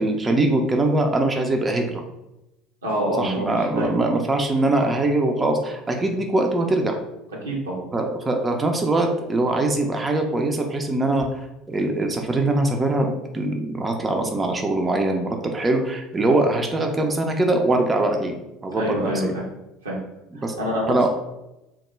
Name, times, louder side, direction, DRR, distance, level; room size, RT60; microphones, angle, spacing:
voice 1, 0.0-2.0 3.2-7.0 7.9-18.4 18.6-19.3 20.4-20.5 20.9-21.1, right 2 dB, 20° right, 3 dB, 0.4 m, -22 dB
voice 2, 2.8-4.1 7.4-7.8 18.7-19.5 19.8-20.0 20.3-21.1, right 1 dB, 80° right, -3 dB, 0.7 m, -26 dB
2.2 x 2.0 x 3.0 m, 0.92 s
figure-of-eight pair, 65°, 0 cm